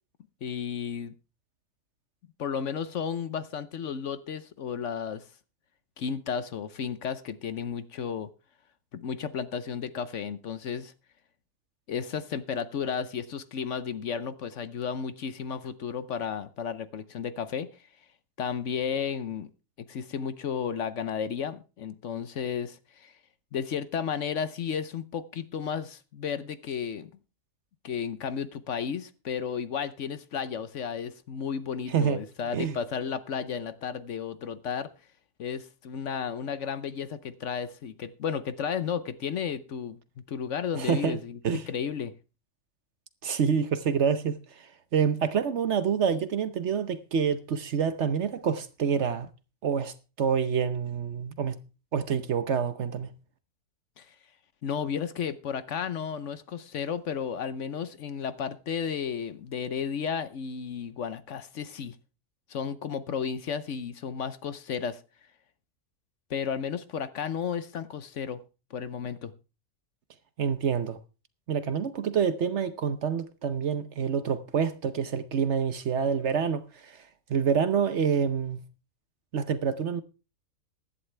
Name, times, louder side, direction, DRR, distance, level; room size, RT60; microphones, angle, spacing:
voice 1, 0.4-1.1 2.4-5.2 6.0-8.3 8.9-10.9 11.9-17.7 18.4-19.5 19.8-23.1 23.5-27.1 27.8-34.9 35.4-40.0 40.3-42.1 54.0-54.1 54.6-62.0 62.5-65.0 66.3-68.4 68.7-69.3, left 7 dB, 60° left, 1.0 m, -33 dB
voice 2, 31.9-32.2 32.5-32.8 40.8-41.2 41.4-41.6 43.2-49.3 49.6-51.6 51.9-53.1 70.4-71.0 71.5-77.0 77.3-78.6 79.3-80.0, right 7 dB, 55° right, 1.0 m, -27 dB
15.5 x 11.0 x 3.3 m
omnidirectional pair, 1.5 m